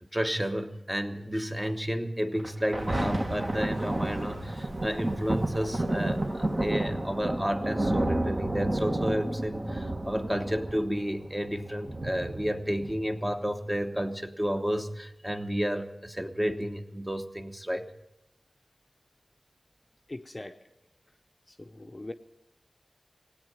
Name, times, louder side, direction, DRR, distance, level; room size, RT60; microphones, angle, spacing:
voice 1, 0.0-17.9, equal, 10° right, 6 dB, 1.0 m, -31 dB
Thunder, 2.4-13.4 14.0-14.1, right 1 dB, 40° right, 1.5 m, -31 dB
Run, 2.8-7.5, right 2 dB, 75° right, 1.3 m, -45 dB
voice 2, 20.1-20.6 21.5-22.1, left 2 dB, 30° left, 7 dB, 0.7 m, -41 dB
17.0 x 8.7 x 8.9 m, 0.92 s
wide cardioid pair, 55°, 0 cm